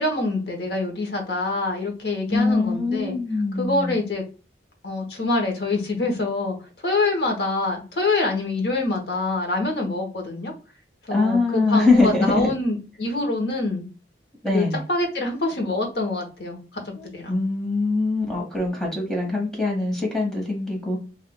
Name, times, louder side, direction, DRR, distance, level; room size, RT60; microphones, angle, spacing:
voice 1, 0.0-3.2 3.5-4.2 4.8-6.6 6.8-10.5 11.0-13.9 14.5-16.8 17.1-17.3, left 2 dB, 65° left, 2 dB, 1.0 m, -25 dB
voice 2, 2.3-4.0 11.1-12.5 14.4-14.8 16.9-21.0, left 3 dB, ahead, -2 dB, 1.2 m, -23 dB
3.5 x 2.4 x 2.3 m, 0.34 s
head